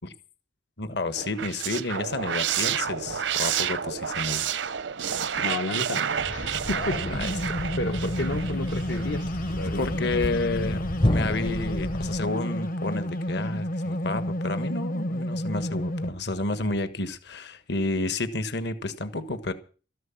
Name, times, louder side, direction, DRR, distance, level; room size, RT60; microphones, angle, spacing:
voice 1, 0.8-4.5 5.2-5.3 7.1-7.7 9.7-10.8 11.1-19.5, left 2 dB, 65° left, 1.5 m, -31 dB
sound 1, 1.2-9.2, right 8 dB, 85° right, 0.7 m, -30 dB
voice 2, 5.4-7.5 7.8-9.9, left 2 dB, 80° left, 1.4 m, -32 dB
Thump thud, 6.1-12.3, left 1 dB, 25° left, 0.6 m, -31 dB
sound 2, 6.4-16.1, equal, 50° left, 1.0 m, -31 dB
14.0 x 11.0 x 7.3 m
head